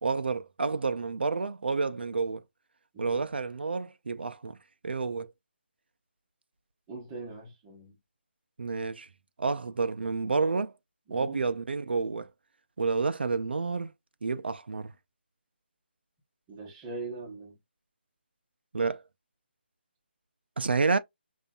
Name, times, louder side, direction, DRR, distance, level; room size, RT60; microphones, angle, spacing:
voice 1, 0.0-2.4 3.0-4.6 4.8-5.3 8.6-9.1 9.4-10.7 11.1-12.3 12.8-13.9 14.2-14.9 18.7-19.0 20.6-21.0, right 4 dB, 65° right, 0.5 m, -29 dB
voice 2, 2.9-3.3 6.9-8.0 11.1-11.4 16.5-17.6, right 3 dB, 10° right, 0.7 m, -41 dB
5.4 x 2.6 x 2.3 m
hypercardioid pair, 180°, 6 cm